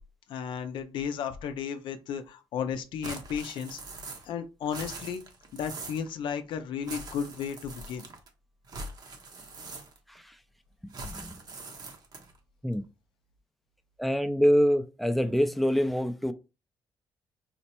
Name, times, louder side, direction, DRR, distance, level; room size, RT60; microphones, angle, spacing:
voice 1, 0.3-3.8 4.2-5.2 5.5-8.0, left 7 dB, 75° left, 0.4 m, -34 dB
sound 1, 3.0-4.4 4.6-6.1 6.8-8.3 8.7-10.2 10.9-12.4, right 3 dB, 50° right, 0.7 m, -42 dB
voice 2, 10.8-11.4 12.6-12.8 14.0-16.3, equal, ahead, 0.4 m, -26 dB
4.3 x 2.0 x 2.8 m
cardioid pair, 105°, 8 cm